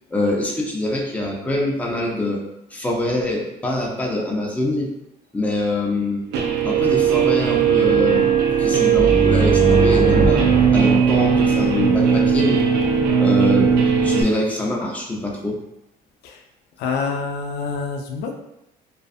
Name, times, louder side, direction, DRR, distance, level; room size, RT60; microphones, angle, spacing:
voice 1, 0.1-2.4 2.7-4.9 5.3-6.2 6.6-8.3 8.6-10.4 10.7-12.6 13.2-13.8 14.0-15.6, left 1 dB, 10° left, -2 dB, 0.5 m, -24 dB
Guitar, 6.3-14.2, right 7 dB, 80° right, 0.4 m, -17 dB
sound 1, 8.9-12.5, right 2 dB, 35° right, 1.3 m, -22 dB
voice 2, 16.8-18.3, left 4 dB, 75° left, 3 dB, 0.4 m, -26 dB
2.5 x 2.4 x 2.3 m, 0.86 s
cardioid pair, 110°, 17 cm